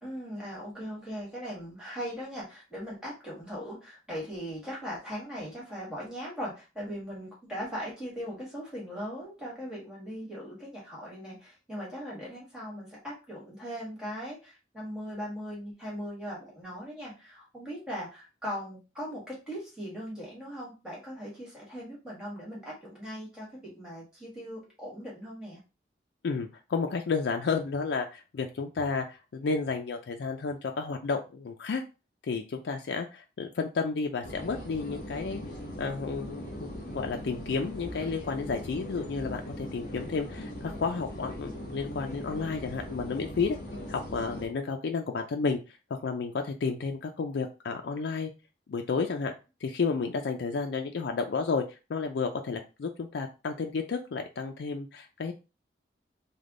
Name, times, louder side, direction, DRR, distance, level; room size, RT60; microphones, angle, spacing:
voice 1, 0.0-25.6, equal, 5° right, -5 dB, 1.6 m, -39 dB
voice 2, 26.2-31.8 32.3-35.4 35.8-36.4 36.9-43.6 43.9-45.6 45.9-48.3 48.7-49.3 49.6-55.3, left 4 dB, 75° left, 4 dB, 0.4 m, -31 dB
sound 1, 34.2-44.5, equal, 45° left, 1.2 m, -40 dB
3.4 x 2.2 x 3.7 m, 0.30 s
head